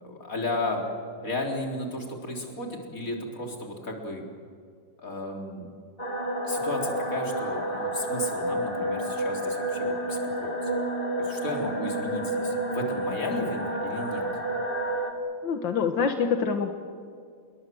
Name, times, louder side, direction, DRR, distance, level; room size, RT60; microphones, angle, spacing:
voice 1, 0.0-0.8 1.2-4.2 5.0-5.7 6.4-10.7 11.2-14.3, left 2 dB, 45° left, 1 dB, 4.3 m, -34 dB
sound 1, 6.0-15.1, right 1 dB, 30° left, 2.6 m, -30 dB
voice 2, 15.4-16.7, left 6 dB, 85° left, 6 dB, 2.1 m, -25 dB
27.5 x 22.0 x 7.8 m, 2.3 s
omnidirectional pair, 2.0 m